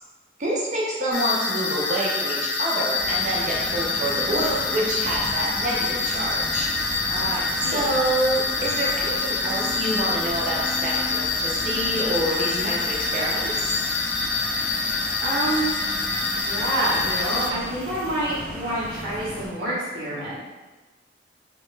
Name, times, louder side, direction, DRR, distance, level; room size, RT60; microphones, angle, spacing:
voice 1, 0.4-6.7 7.6-13.8, right 1 dB, 40° right, -3 dB, 0.6 m, -27 dB
sound 1, 1.1-17.5, left 4 dB, 70° left, 0.4 m, -26 dB
sound 2, 3.0-19.5, equal, 5° left, 0.4 m, -37 dB
voice 2, 7.1-7.8 15.2-15.7 16.3-20.4, right 1 dB, 85° right, -12 dB, 0.8 m, -27 dB
2.9 x 2.2 x 3.1 m, 1.2 s
head